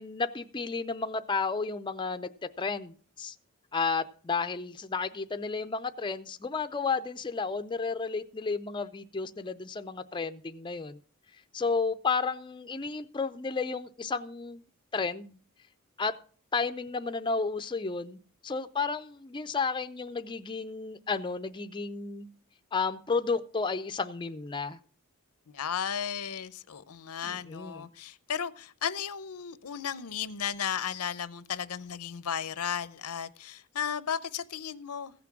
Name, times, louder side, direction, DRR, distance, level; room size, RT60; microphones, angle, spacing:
voice 1, 0.0-2.3 2.6-3.3 3.7-11.0 11.5-14.6 14.9-15.4 16.0-16.1 16.5-18.2 18.4-22.3 22.7-24.8 27.2-27.9, left 4 dB, 20° left, 0.4 m, -32 dB
voice 2, 25.5-35.1, left 8 dB, 90° left, 0.7 m, -34 dB
15.5 x 6.0 x 5.9 m
head